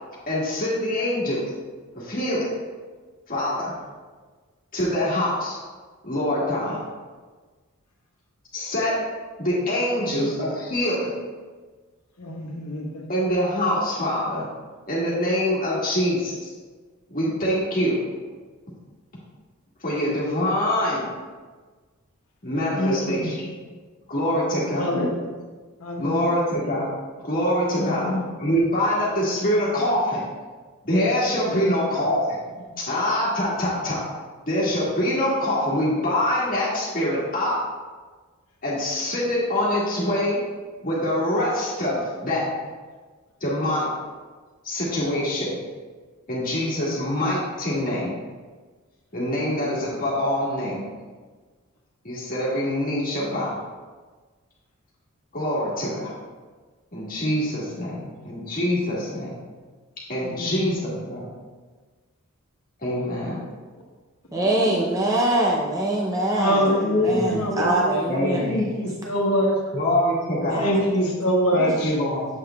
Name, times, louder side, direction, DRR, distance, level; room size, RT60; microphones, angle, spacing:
voice 1, 0.3-1.4 1.9-2.5 3.3-3.7 4.7-5.6 6.0-6.8 8.5-9.0 9.4-11.1 13.1-14.5 14.9-16.3 17.1-18.0 19.8-21.1 22.4-23.5 24.1-25.0 26.0-26.9 27.2-28.1 28.4-30.3 30.8-32.4 32.8-34.0 34.5-37.5 38.6-40.4 40.8-42.4 43.4-43.9 44.6-45.6 46.3-48.1 49.1-50.8 52.0-53.6 55.3-56.1 56.9-59.3 60.1-61.3 62.8-63.4 67.1-67.4 68.1-68.7 69.7-70.7 71.5-72.3, left 1 dB, 40° left, 1.8 m, -24 dB
voice 2, 9.6-10.1 12.2-13.0 22.7-23.3 24.7-25.2 25.8-26.4 27.7-28.3 31.4-31.7 32.6-32.7 58.1-58.2 60.2-60.8 62.9-63.0 64.4-65.0 66.3-68.0 68.4-69.5 70.6-72.0, equal, 80° left, 1.2 m, -25 dB
voice 3, 64.3-68.5 70.5-70.8, right 1 dB, 15° right, 0.5 m, -24 dB
7.4 x 6.7 x 2.3 m
head